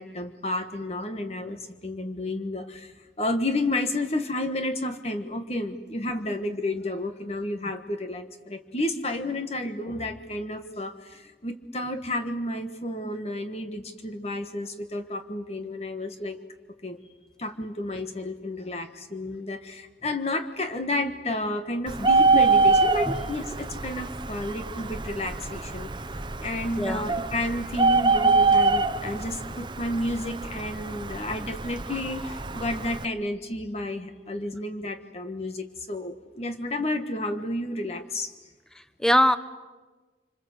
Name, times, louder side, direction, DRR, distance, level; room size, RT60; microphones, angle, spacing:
voice 1, 0.0-16.4 16.8-17.0 17.4-38.3, left 1 dB, 35° left, 7 dB, 1.4 m, -31 dB
Bird, 21.9-33.0, right 3 dB, 25° right, 0.9 m, -25 dB
voice 2, 26.8-27.1 38.7-39.4, equal, 5° left, 11 dB, 1.0 m, -22 dB
27.5 x 26.5 x 8.1 m, 1.3 s
head